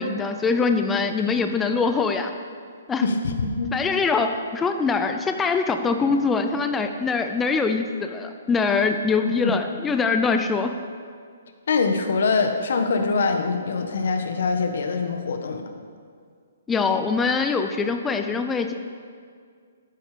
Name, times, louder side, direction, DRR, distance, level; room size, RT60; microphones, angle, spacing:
voice 1, 0.0-2.3 2.9-3.0 3.7-10.7 16.7-18.7, left 4 dB, 10° left, 6 dB, 0.5 m, -23 dB
voice 2, 3.0-3.7 9.2-9.3 11.7-15.6, left 4 dB, 65° left, 5 dB, 1.5 m, -23 dB
11.5 x 9.4 x 5.1 m, 2.1 s
hypercardioid pair, 155°, 0 cm